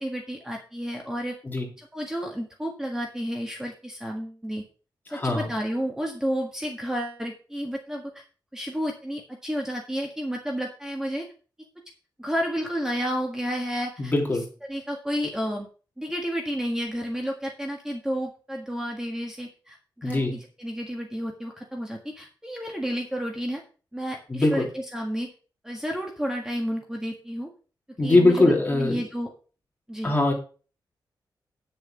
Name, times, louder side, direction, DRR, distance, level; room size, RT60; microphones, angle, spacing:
voice 1, 0.0-1.3 1.8-4.6 5.1-8.2 8.5-11.3 12.2-14.1 14.7-15.7 16.0-23.6 23.9-25.3 25.6-27.5 28.0-29.3 29.9-30.1, equal, 5° right, 1 dB, 1.7 m, -31 dB
voice 2, 5.1-5.5 14.0-14.4 20.0-20.4 24.3-24.7 28.0-29.0 30.0-30.3, left 2 dB, 25° left, 0 dB, 3.1 m, -21 dB
9.9 x 7.0 x 5.1 m, 0.37 s
wide cardioid pair, 140°, 8 cm